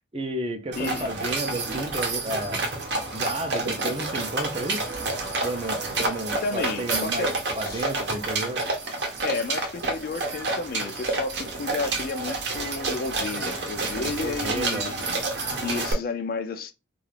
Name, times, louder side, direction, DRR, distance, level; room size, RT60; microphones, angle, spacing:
voice 1, 0.1-2.6 3.1-4.8 5.4-7.3 7.6-8.6 14.2-14.9, right 1 dB, 30° right, 0.5 m, -32 dB
voice 2, 0.7-1.1 6.4-7.3 7.6-7.9 9.2-15.1 15.6-16.7, left 4 dB, 50° left, 0.3 m, -32 dB
sound 1, 0.7-15.9, right 3 dB, 60° right, 0.7 m, -29 dB
2.4 x 2.3 x 3.3 m
head